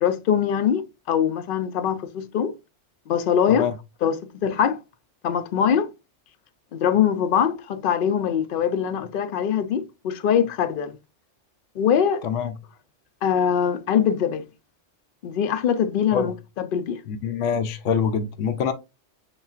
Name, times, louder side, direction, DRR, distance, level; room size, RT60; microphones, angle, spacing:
voice 1, 0.0-2.5 3.1-3.7 4.0-4.8 5.2-5.9 6.7-11.0 11.8-12.2 13.2-14.4 15.2-17.0, left 8 dB, 55° left, 0.6 m, -23 dB
voice 2, 12.2-12.5 16.1-16.3 17.1-18.7, left 7 dB, 85° left, 0.9 m, -25 dB
6.9 x 2.3 x 2.4 m
omnidirectional pair, 1.2 m